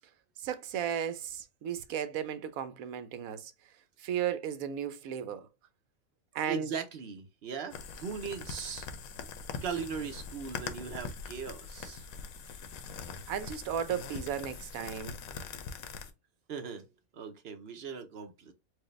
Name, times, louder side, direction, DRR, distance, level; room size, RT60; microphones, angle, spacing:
voice 1, 0.4-3.5 4.0-5.5 6.3-6.7 13.3-15.1, right 9 dB, 75° right, 1.1 m, -35 dB
voice 2, 6.5-8.9 9.6-12.1 16.5-16.9 17.1-18.5, right 6 dB, 55° right, 0.8 m, -39 dB
sound 1, 7.7-16.1, left 5 dB, 75° left, 1.1 m, -42 dB
4.7 x 2.2 x 3.1 m
omnidirectional pair, 1.5 m